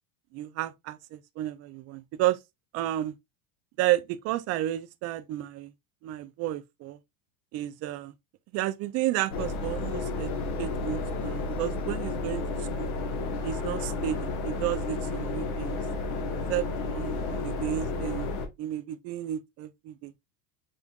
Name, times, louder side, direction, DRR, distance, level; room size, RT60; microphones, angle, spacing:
voice 1, 0.3-2.4 2.7-3.1 3.8-5.7 6.0-7.0 7.5-8.1 8.5-10.3 10.6-12.9 13.4-15.8 16.5-18.3 18.6-20.1, right 14 dB, 35° right, 0.4 m, -32 dB
sound 1, 9.3-18.5, left 3 dB, 75° left, 1.3 m, -32 dB
5.2 x 3.2 x 2.3 m
supercardioid pair, 130°, 45 cm